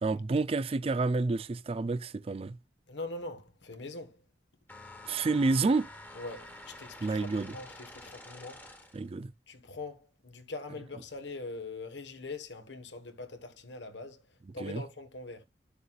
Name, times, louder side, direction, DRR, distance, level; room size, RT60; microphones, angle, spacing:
voice 1, 0.0-2.6 5.1-5.9 7.0-7.6 8.9-9.3 14.6-14.8, right 3 dB, 35° right, 0.4 m, -29 dB
voice 2, 2.9-4.2 6.1-8.7 9.5-14.2 14.5-15.4, left 3 dB, 80° left, 1.5 m, -42 dB
sound 1, 4.7-9.1, left 2 dB, 10° left, 1.4 m, -49 dB
11.0 x 6.7 x 2.4 m
head